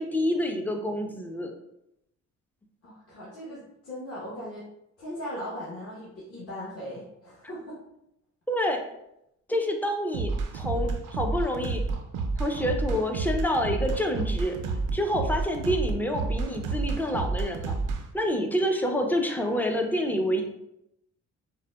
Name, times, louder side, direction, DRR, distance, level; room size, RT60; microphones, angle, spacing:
voice 1, 0.0-1.5 8.5-8.8 9.5-11.8 12.4-14.6 14.9-17.7 18.1-20.4, equal, 5° left, 3 dB, 0.4 m, -27 dB
voice 2, 2.8-4.6 5.0-7.8, equal, 50° left, -8 dB, 1.0 m, -38 dB
sound 1, 10.1-18.0, right 4 dB, 85° right, 0.5 m, -29 dB
3.8 x 2.0 x 2.2 m, 0.81 s
cardioid pair, 90°, 30 cm